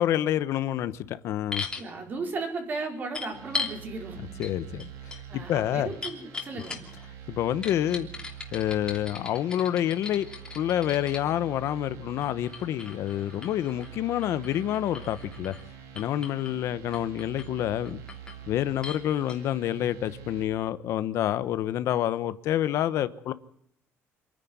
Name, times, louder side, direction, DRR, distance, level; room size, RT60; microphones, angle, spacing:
voice 1, 0.0-1.6 4.4-5.9 7.3-8.1 8.5-10.3 10.5-15.5 15.9-18.0 18.5-23.3, left 12 dB, 60° left, 1.0 m, -28 dB
sound 1, 1.5-1.9 3.1-3.8 4.4-4.5 4.8-7.1 7.6-11.2 12.2-15.7 16.0-16.5 16.9-17.5 17.9-18.4 18.8-19.0 19.3-19.4, left 4 dB, 15° left, 3.0 m, -38 dB
voice 2, 1.8-4.2 5.3-6.8, right 3 dB, 35° right, 4.7 m, -35 dB
sound 2, 3.3-20.4, right 9 dB, 90° right, 4.3 m, -45 dB
26.5 x 10.5 x 9.6 m
cardioid pair, 165°, 5 cm